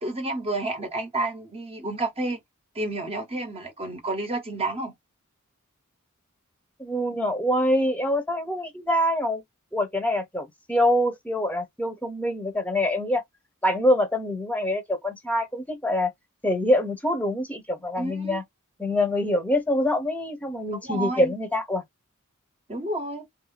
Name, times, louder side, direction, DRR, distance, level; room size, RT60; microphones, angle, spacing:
voice 1, 0.0-2.4 2.7-4.9 18.0-18.4 20.7-21.3 22.7-23.2, right 2 dB, 30° right, 1.1 m, -30 dB
voice 2, 6.8-9.4 9.7-13.2 13.6-16.1 16.4-18.4 18.8-21.8, left 1 dB, 5° left, 1.0 m, -25 dB
3.7 x 2.8 x 4.0 m
head